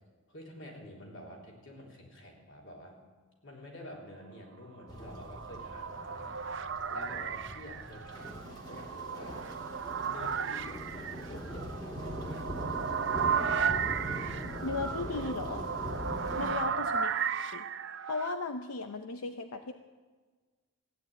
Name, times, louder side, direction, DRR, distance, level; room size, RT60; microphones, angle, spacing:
voice 1, 0.3-3.0 3.4-9.5 10.1-12.4 16.4-16.8, left 1 dB, 60° left, -1 dB, 3.7 m, -49 dB
sound 1, 4.9-16.5, equal, 20° left, 2.2 m, -42 dB
sound 2, 4.9-18.3, right 6 dB, 55° right, 0.6 m, -35 dB
voice 2, 14.6-15.6 16.4-17.1 17.5-17.7 18.1-19.7, left 3 dB, 90° left, 8 dB, 0.7 m, -36 dB
15.0 x 9.9 x 8.8 m, 1.4 s
head